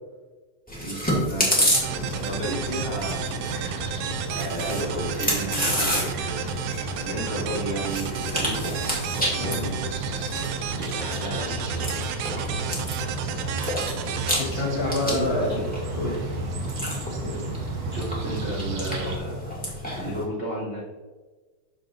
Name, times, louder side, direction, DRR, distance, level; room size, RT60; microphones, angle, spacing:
Chewing mastication, 0.7-20.2, equal, 5° left, 1.4 m, -31 dB
voice 1, 0.8-6.6 7.0-8.7 9.1-10.2 10.8-12.0 15.0-15.6 17.9-19.4 19.9-20.8, right 1 dB, 20° right, -9 dB, 2.2 m, -33 dB
sound 1, 1.7-15.4, right 9 dB, 85° right, 2.1 m, -34 dB
sound 2, 1.8-19.2, right 2 dB, 65° right, 1.7 m, -33 dB
voice 2, 9.4-9.8 14.3-15.5 15.9-16.3 17.2-17.4, left 2 dB, 60° left, -3 dB, 2.3 m, -28 dB
12.5 x 4.8 x 2.5 m, 1.3 s
omnidirectional pair, 3.5 m